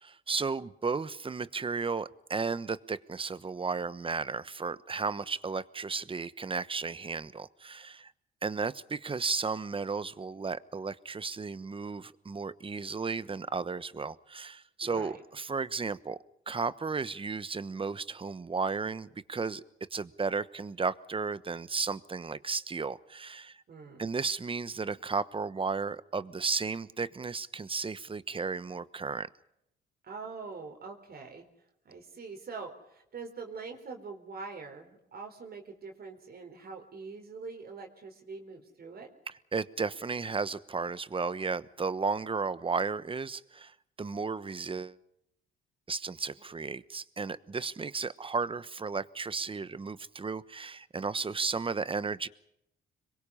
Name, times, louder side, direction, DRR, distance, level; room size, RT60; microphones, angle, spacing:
voice 1, 0.0-8.1 8.4-16.2 16.5-19.6 19.9-23.6 24.0-29.3 39.5-45.0 45.9-52.3, right 4 dB, 25° right, 16 dB, 1.1 m, -34 dB
voice 2, 14.8-15.2 23.7-24.0 30.0-31.5 31.8-39.1, right 4 dB, 50° right, 3 dB, 4.3 m, -44 dB
26.0 x 22.5 x 5.7 m, 0.77 s
cardioid pair, 90°, 20 cm